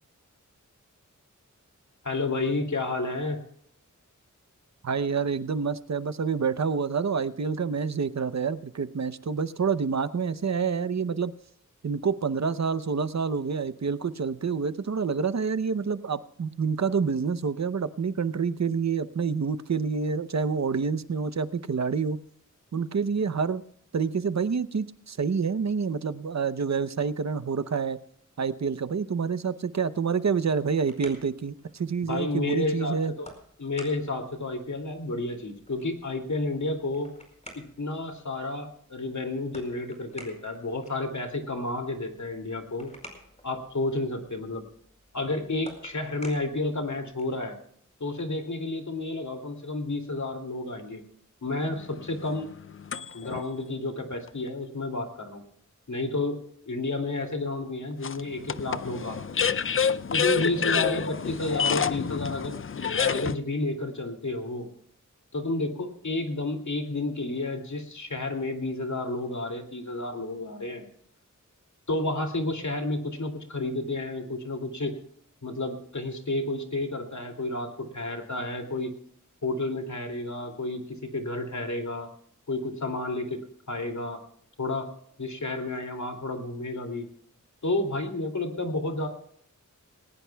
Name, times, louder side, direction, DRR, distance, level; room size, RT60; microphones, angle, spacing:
voice 1, 2.0-3.4 32.0-33.3 33.6-37.2 37.6-42.9 43.4-44.7 45.1-47.5 48.0-51.0 51.4-52.5 53.1-55.4 55.9-59.2 59.4-59.6 60.1-62.6 63.0-64.7 65.3-70.8 71.9-75.0 75.4-78.9 79.4-82.1 82.5-83.4 83.7-84.2 84.6-84.9 85.2-87.1 87.6-89.1, left 2 dB, 65° left, 4 dB, 2.6 m, -31 dB
voice 2, 4.8-11.3 11.8-22.2 22.7-23.6 23.9-28.0 28.4-33.1, right 5 dB, 60° right, 13 dB, 0.7 m, -28 dB
sound 1, 30.7-47.5, equal, 20° left, 4.8 m, -52 dB
sound 2, 51.7-53.4 54.1-54.2 58.0-63.4, left 6 dB, 45° left, 0.5 m, -28 dB
19.5 x 18.5 x 2.3 m, 0.65 s
wide cardioid pair, 85°, 31 cm